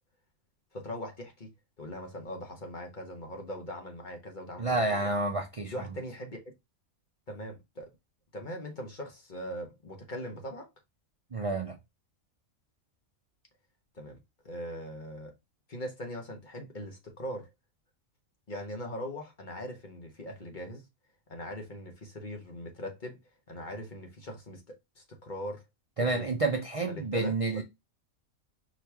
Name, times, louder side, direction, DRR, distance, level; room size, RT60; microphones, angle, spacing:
voice 1, 0.7-1.5 1.8-5.1 5.7-6.4 7.3-7.9 8.3-10.7 13.9-14.2 14.4-15.3 15.7-17.5 18.5-20.8 21.3-23.2 23.5-24.6 25.0-25.6 26.0-26.3 26.9-27.6, equal, 35° left, 1.2 m, -40 dB
voice 2, 4.6-5.7 11.3-11.8 26.0-27.6, right 3 dB, 40° right, 0.5 m, -29 dB
4.8 x 3.2 x 3.4 m
omnidirectional pair, 1.4 m